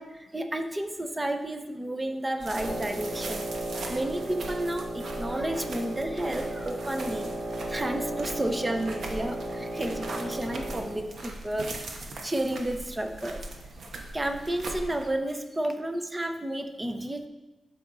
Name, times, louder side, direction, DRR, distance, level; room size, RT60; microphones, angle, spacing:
voice 1, 0.0-3.5 3.8-7.3 7.7-13.4 14.1-17.3, right 1 dB, 15° right, 5 dB, 0.8 m, -32 dB
sound 1, 2.4-15.1, right 2 dB, 60° right, 1.2 m, -40 dB
Wind instrument woodwind instrument, 2.5-11.1, right 1 dB, 35° right, 1.5 m, -35 dB
12.5 x 5.5 x 4.0 m, 1.1 s
wide cardioid pair, 140°, 0 cm